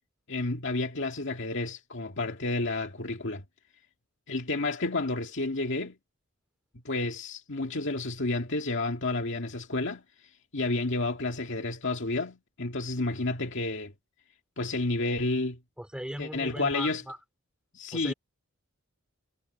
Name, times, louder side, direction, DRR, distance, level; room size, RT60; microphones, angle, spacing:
voice 1, 0.3-3.4 4.3-6.0 6.8-10.0 10.5-13.9 14.6-15.6 16.2-17.0 17.7-18.1, left 2 dB, 65° left, 2.1 m, -30 dB
voice 2, 15.8-17.2 17.9-18.1, equal, 5° right, 3.6 m, -37 dB
head